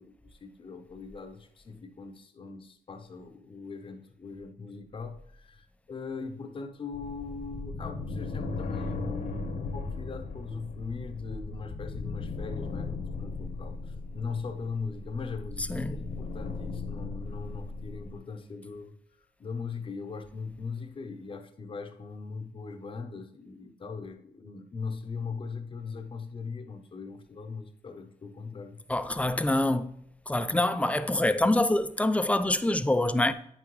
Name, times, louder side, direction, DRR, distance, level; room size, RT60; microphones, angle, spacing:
voice 1, 0.0-19.0 19.4-28.8, left 4 dB, 35° left, 0.7 m, -40 dB
sound 1, 6.9-18.2, left 3 dB, 70° left, 1.0 m, -37 dB
voice 2, 15.7-16.0 28.9-29.9 30.3-33.3, left 1 dB, 10° left, 0.4 m, -25 dB
8.7 x 5.9 x 3.1 m
cardioid pair, 85°, 15 cm